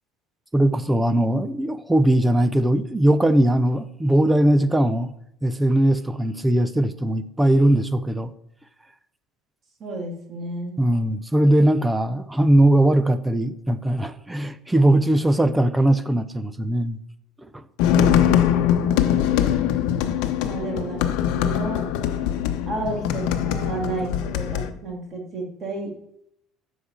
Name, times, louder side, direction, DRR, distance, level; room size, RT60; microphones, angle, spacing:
voice 1, 0.5-5.1 5.4-8.3 10.8-17.0 17.5-17.6, right 1 dB, 5° right, 12 dB, 0.6 m, -20 dB
voice 2, 9.8-10.8 17.9-18.7 20.4-21.8 22.7-25.9, right 2 dB, 30° right, 0 dB, 2.7 m, -32 dB
sound 1, 17.8-24.7, left 10 dB, 70° left, 1.0 m, -22 dB
9.7 x 6.5 x 7.3 m, 0.77 s
cardioid pair, 170°, 0 cm